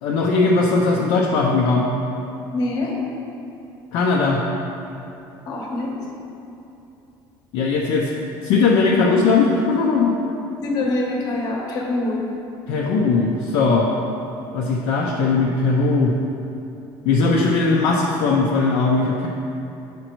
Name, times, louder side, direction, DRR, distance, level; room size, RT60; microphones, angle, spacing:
voice 1, 0.0-1.9 3.9-4.4 7.5-8.1 8.4-10.1 12.7-13.9 14.5-16.2 17.0-19.3, left 4 dB, 65° left, -3 dB, 0.5 m, -19 dB
voice 2, 2.5-2.9 5.5-6.0 10.6-12.2, left 2 dB, 45° left, -1 dB, 1.0 m, -24 dB
7.8 x 5.2 x 3.0 m, 2.8 s
cardioid pair, 175°, 9 cm